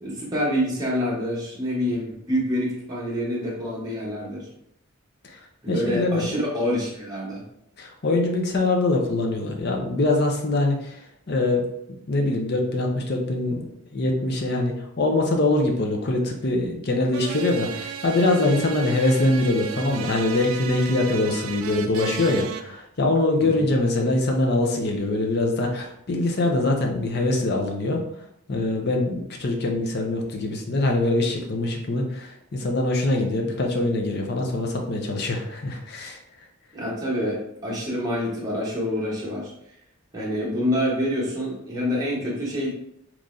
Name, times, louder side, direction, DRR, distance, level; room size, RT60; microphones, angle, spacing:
voice 1, 0.0-4.5 5.6-7.4 23.4-23.7 36.7-39.5 40.1-42.7, equal, 15° right, -6 dB, 0.9 m, -27 dB
voice 2, 5.7-6.3 7.8-11.0 11.3-11.6 11.9-28.0 28.5-36.2, left 2 dB, 50° left, 2 dB, 0.6 m, -23 dB
sound 1, 17.1-22.6, right 7 dB, 70° right, 0.3 m, -34 dB
3.8 x 3.0 x 2.5 m, 0.75 s
head